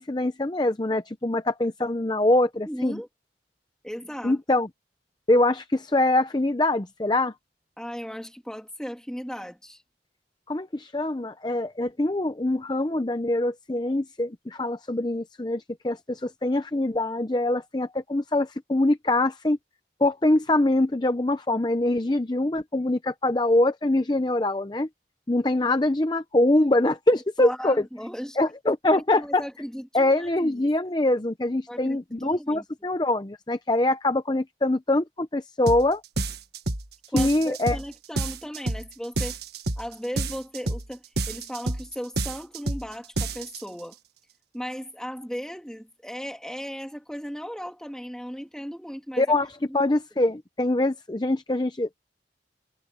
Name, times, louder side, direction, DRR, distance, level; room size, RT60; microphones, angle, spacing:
voice 1, 0.0-3.0 4.2-4.7 5.3-7.3 10.5-19.6 20.0-24.9 25.3-27.8 28.4-29.4 29.9-36.0 37.1-37.8 49.2-52.0, left 2 dB, 25° left, 0.6 m, -24 dB
voice 2, 2.7-3.1 3.8-4.4 7.8-9.8 27.4-28.4 28.9-30.7 31.7-32.6 37.1-39.4 39.8-44.0 44.5-49.2 49.7-49.8, equal, 5° left, 2.5 m, -36 dB
sound 1, 35.7-35.9 36.2-36.9 37.2-37.9 38.2-38.9 39.2-39.9 40.2-40.9 41.2-41.9 42.2-42.9 43.2-43.6, right 2 dB, 70° right, 1.6 m, -28 dB
head